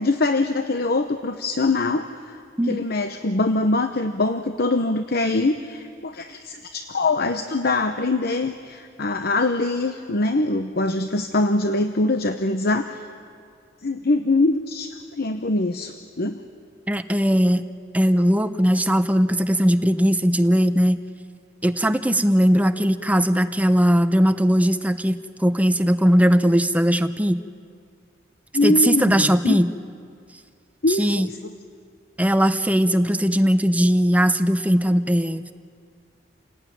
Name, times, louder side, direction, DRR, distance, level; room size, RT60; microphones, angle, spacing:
voice 1, 0.0-2.4 2.7-13.0 13.8-16.4 28.5-29.6 30.8-31.5, left 2 dB, 55° left, 8 dB, 0.9 m, -23 dB
voice 2, 16.9-17.7 17.9-21.0 21.6-27.4 28.6-29.7 30.9-31.3 32.2-35.5, equal, 10° right, 10 dB, 0.8 m, -19 dB
29.0 x 17.5 x 9.4 m, 2.2 s
head